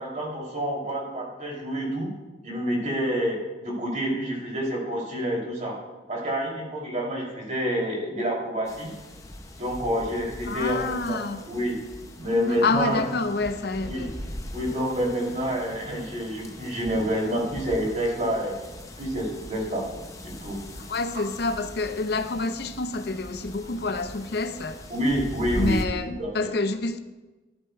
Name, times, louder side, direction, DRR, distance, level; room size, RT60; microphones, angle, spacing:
voice 1, 0.0-2.1 2.4-5.8 6.1-8.9 9.5-11.7 12.2-13.0 13.8-14.1 14.5-18.5 19.0-19.9 20.2-20.6 24.9-26.5, equal, 45° right, -2 dB, 2.7 m, -28 dB
sound 1, 8.6-25.8, left 1 dB, 20° left, 0.8 m, -40 dB
voice 2, 10.5-11.4 12.6-14.1 20.9-24.8 25.6-27.0, left 3 dB, 65° left, 9 dB, 0.6 m, -28 dB
12.5 x 11.0 x 2.2 m, 1.2 s
head